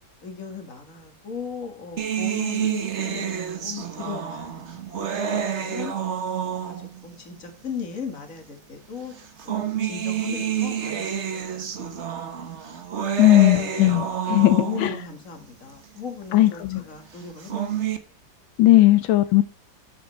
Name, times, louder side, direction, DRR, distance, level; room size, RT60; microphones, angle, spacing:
voice 1, 0.2-3.3 3.6-5.9 6.6-9.1 9.4-11.8 12.1-12.2 13.3-13.9 14.3-17.9, left 6 dB, 45° left, 2.2 m, -37 dB
sound 1, 2.0-7.1 8.0-8.1 9.2-15.1 17.2-18.0, right 8 dB, 45° right, 1.2 m, -29 dB
voice 2, 13.2-15.0 16.3-16.8 18.6-19.4, left 16 dB, 85° left, 1.5 m, -17 dB
11.5 x 8.0 x 3.4 m
omnidirectional pair, 2.1 m